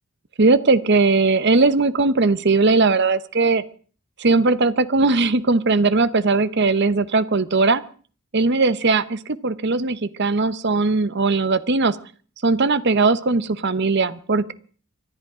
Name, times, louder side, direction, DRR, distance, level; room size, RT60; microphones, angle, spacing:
voice 1, 0.4-3.6 4.2-7.8 8.3-12.0 12.4-14.5, right 3 dB, 50° right, 14 dB, 0.9 m, -19 dB
25.0 x 11.0 x 4.9 m, 0.42 s
head